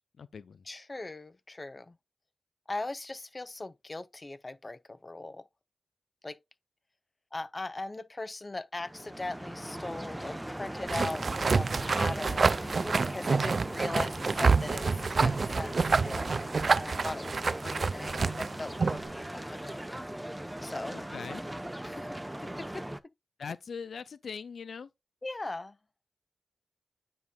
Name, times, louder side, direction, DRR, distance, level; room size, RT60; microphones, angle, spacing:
voice 1, 0.0-0.7 20.9-21.4 23.4-24.9, left 6 dB, 80° left, 0.3 m, -41 dB
voice 2, 0.7-2.0 2.7-5.4 6.2-6.4 7.3-16.5 16.7-19.7 20.6-21.0 21.8-22.2 22.6-22.9 25.2-25.8, left 2 dB, 35° left, 0.6 m, -39 dB
sound 1, 8.8-23.0, right 1 dB, 10° right, 0.7 m, -39 dB
sound 2, 10.9-19.1, right 4 dB, 60° right, 0.3 m, -28 dB
9.5 x 5.3 x 2.3 m
cardioid pair, 55°, 0 cm